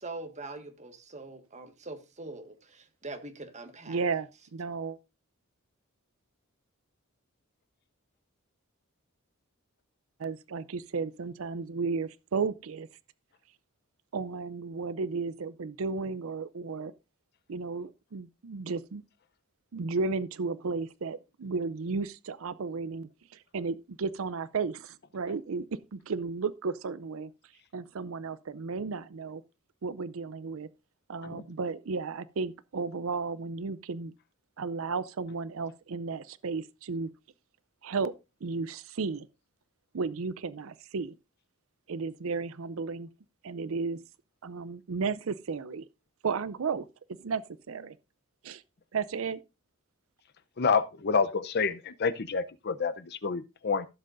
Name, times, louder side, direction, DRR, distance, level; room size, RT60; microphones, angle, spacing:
voice 1, 0.0-4.0, right 2 dB, 35° right, 1.5 m, -43 dB
voice 2, 3.9-5.0 10.2-12.9 14.1-16.9 17.5-19.0 19.7-27.3 27.7-29.4 29.8-30.7 31.1-34.1 34.6-37.1 37.8-38.1 38.4-39.3 39.9-41.2 41.9-43.1 43.4-44.0 44.4-45.8 46.2-46.9 47.2-48.0 48.4-48.6 48.9-49.4, right 4 dB, 70° right, 0.5 m, -34 dB
voice 3, 50.6-53.9, left 5 dB, 50° left, 0.6 m, -28 dB
15.0 x 7.6 x 2.5 m
head